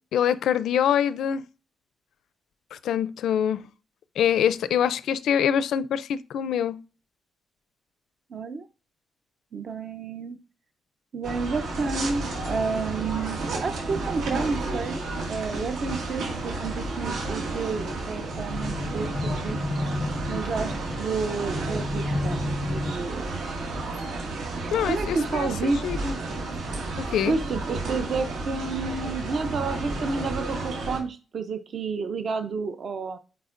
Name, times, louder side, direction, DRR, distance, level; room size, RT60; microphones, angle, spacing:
voice 1, 0.1-1.4 2.7-3.6 4.2-6.8 24.7-26.0 27.0-27.3, left 9 dB, 75° left, 0.4 m, -24 dB
voice 2, 8.3-8.7 9.5-10.4 11.1-19.1 19.4-19.6 20.3-22.4 22.7-23.7 24.6-26.2 27.3-33.2, right 4 dB, 40° right, 0.5 m, -30 dB
sound 1, 11.2-31.0, right 2 dB, 80° right, 2.0 m, -32 dB
sound 2, 18.5-23.3 24.0-24.1, left 2 dB, 15° left, 0.5 m, -31 dB
9.3 x 4.2 x 2.5 m
cardioid pair, 175°, 0 cm